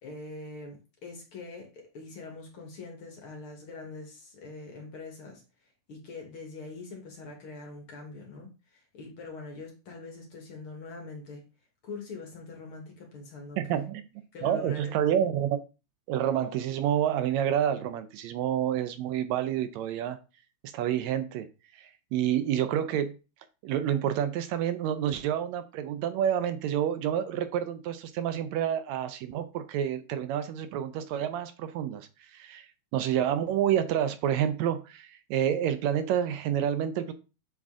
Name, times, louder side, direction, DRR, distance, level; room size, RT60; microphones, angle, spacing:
voice 1, 0.0-5.4 5.9-11.4 11.8-13.9 14.3-15.0, left 3 dB, 55° left, 2.0 m, -43 dB
voice 2, 13.6-14.0 14.4-15.6 16.1-20.2 20.6-21.5 21.7-23.2 23.6-37.1, right 10 dB, 80° right, 1.8 m, -28 dB
7.4 x 3.7 x 3.6 m
omnidirectional pair, 3.3 m